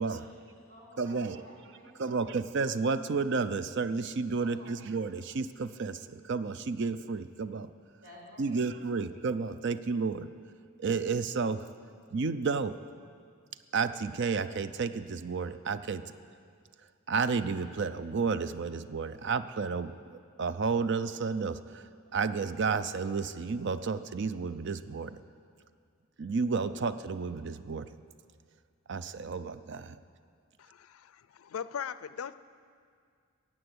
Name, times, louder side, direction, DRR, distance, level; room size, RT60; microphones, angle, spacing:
voice 1, 0.0-2.2 4.4-4.9 8.0-8.7, equal, 80° right, -5 dB, 3.0 m, -53 dB
voice 2, 1.0-1.4 2.0-7.7 8.4-10.3 10.8-11.7 12.1-12.7 13.7-16.0 17.1-21.8 22.1-25.2 26.2-27.9 28.9-30.0, right 4 dB, 55° right, 12 dB, 0.5 m, -31 dB
voice 3, 30.6-32.3, left 7 dB, 80° left, 15 dB, 0.4 m, -39 dB
14.5 x 8.9 x 7.9 m, 2.2 s
head